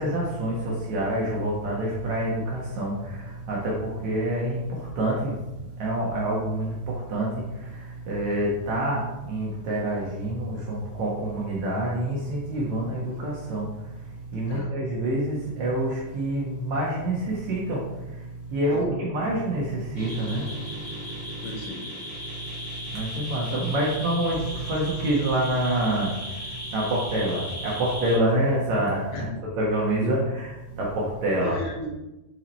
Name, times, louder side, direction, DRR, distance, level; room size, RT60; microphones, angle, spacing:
voice 1, 0.0-5.4 5.8-13.7 14.3-18.2 18.5-20.5 22.9-26.5 26.7-31.6, right 1 dB, 85° right, -4 dB, 1.6 m, -27 dB
sound 1, 20.0-28.2, equal, 30° left, 2.5 m, -36 dB
voice 2, 21.4-21.8 29.1-29.4 31.4-31.9, left 2 dB, 75° left, 0 dB, 2.4 m, -35 dB
9.6 x 4.6 x 4.1 m, 0.98 s
omnidirectional pair, 5.5 m